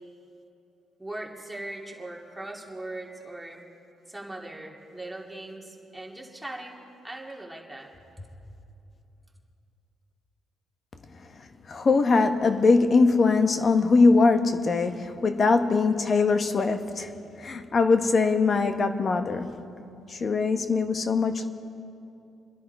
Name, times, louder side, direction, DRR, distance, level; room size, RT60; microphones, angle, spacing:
voice 1, 1.0-3.6 4.1-7.9 8.2-8.3, right 1 dB, 5° right, 2.7 m, -40 dB
voice 2, 11.7-17.1 17.4-19.7 20.1-21.5, left 4 dB, 45° left, 1.1 m, -22 dB
29.0 x 10.5 x 4.7 m
cardioid pair, 90°, 0 cm